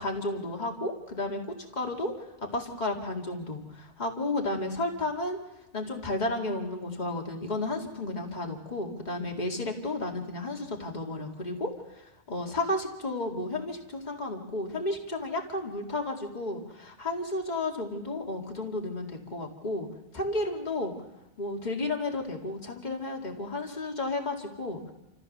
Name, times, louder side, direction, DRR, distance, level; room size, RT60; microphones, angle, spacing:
voice 1, 0.0-1.4 1.7-2.1 2.4-5.4 5.7-19.9 20.1-20.9 21.4-24.9, left 2 dB, 35° left, 1 dB, 2.4 m, -32 dB
29.0 x 14.5 x 6.6 m, 0.99 s
omnidirectional pair, 1.2 m